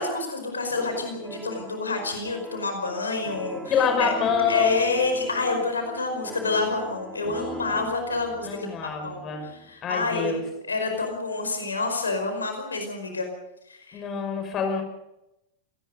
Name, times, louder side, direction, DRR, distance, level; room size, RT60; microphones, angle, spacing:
voice 1, 0.0-4.1 4.5-13.3 13.7-14.0, left 3 dB, 75° left, 5 dB, 5.1 m, -28 dB
sound 1, 0.8-9.8, right 2 dB, 10° right, 1.8 m, -41 dB
voice 2, 3.7-5.0 7.3-7.5 8.4-9.5 9.8-10.4 13.9-14.8, left 6 dB, 30° left, 5 dB, 5.7 m, -26 dB
27.5 x 19.5 x 5.3 m, 0.87 s
figure-of-eight pair, 90°, 0 cm